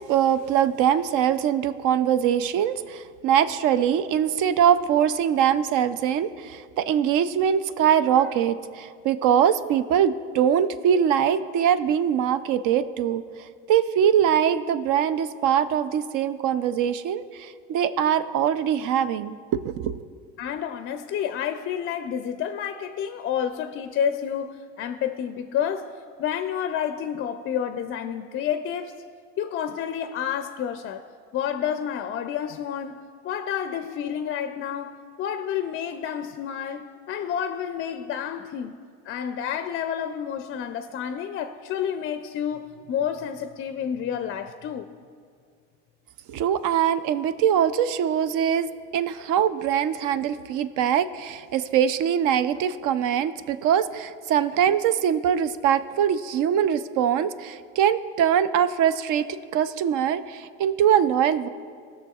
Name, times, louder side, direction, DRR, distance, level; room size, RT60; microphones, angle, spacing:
voice 1, 0.1-13.2 13.7-20.0 46.3-61.5, right 9 dB, 60° right, 13 dB, 0.5 m, -22 dB
voice 2, 20.4-25.9 26.2-28.9 29.4-31.1 31.3-38.8 39.0-44.9, left 8 dB, 40° left, 9 dB, 0.4 m, -29 dB
17.5 x 6.3 x 2.4 m, 2.1 s
supercardioid pair, 95°, 35 cm